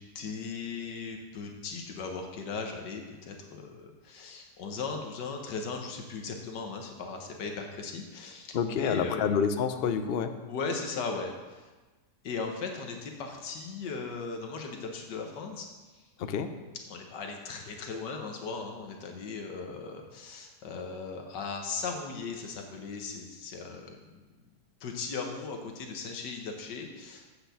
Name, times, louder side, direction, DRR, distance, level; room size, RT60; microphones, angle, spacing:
voice 1, 0.1-9.4 10.5-11.7 12.2-15.7 15.9-16.1 16.9-24.2 24.8-27.3, left 4 dB, 85° left, 3 dB, 1.7 m, -37 dB
voice 2, 8.5-10.3 16.2-16.5, left 7 dB, 60° left, 8 dB, 0.6 m, -28 dB
8.0 x 6.5 x 6.8 m, 1.2 s
omnidirectional pair, 1.8 m